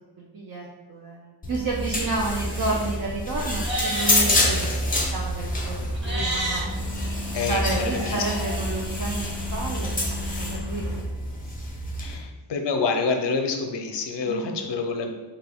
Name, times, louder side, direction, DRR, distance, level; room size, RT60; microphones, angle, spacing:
voice 1, 0.2-6.6 7.5-11.0 11.3-11.4 14.3-14.6, right 3 dB, 50° right, -2 dB, 0.5 m, -31 dB
sound 1, 1.4-12.1, left 1 dB, 20° left, 0.6 m, -28 dB
Livestock farm animals working animals, 3.5-4.3 5.9-6.6 7.7-8.6, right 1 dB, 25° right, 0.9 m, -30 dB
sound 2, 5.3-11.1, left 1 dB, 80° right, 1.4 m, -34 dB
voice 2, 7.3-8.2 12.0-15.1, left 4 dB, 65° left, 4 dB, 0.6 m, -27 dB
3.7 x 2.3 x 3.4 m, 1.2 s
wide cardioid pair, 85°, 45 cm